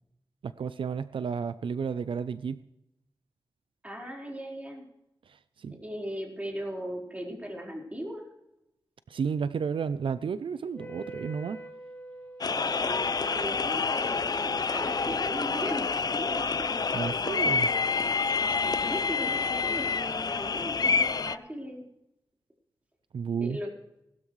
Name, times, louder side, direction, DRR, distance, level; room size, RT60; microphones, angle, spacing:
voice 1, 0.4-2.6 5.3-5.8 9.1-11.6 16.9-17.7 23.1-23.6, right 6 dB, 80° right, 14 dB, 0.5 m, -32 dB
voice 2, 3.8-4.8 5.8-8.3 12.5-16.7 18.4-21.9 23.4-23.7, equal, 15° right, -1 dB, 4.5 m, -38 dB
Wind instrument woodwind instrument, 10.7-17.4, right 1 dB, 20° left, 3.8 m, -44 dB
sound 1, 12.4-21.4, left 5 dB, 50° left, 0.5 m, -28 dB
19.0 x 12.5 x 3.2 m, 0.85 s
wide cardioid pair, 85°, 9 cm